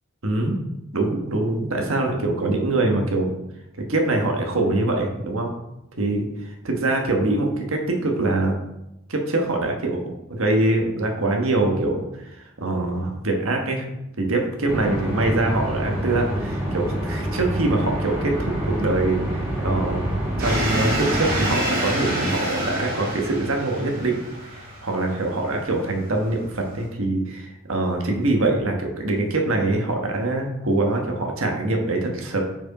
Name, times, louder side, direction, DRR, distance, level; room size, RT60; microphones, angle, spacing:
voice 1, 0.2-0.6 0.9-3.3 3.8-5.5 6.0-8.6 9.1-10.0 10.3-13.8 14.2-20.1 20.4-32.4, right 2 dB, 70° right, 2 dB, 1.3 m, -24 dB
sound 1, 14.7-21.5, right 1 dB, 10° right, 2.1 m, -27 dB
sound 2, 20.4-26.9, right 1 dB, 45° right, 2.3 m, -28 dB
6.2 x 4.7 x 4.8 m, 0.87 s
head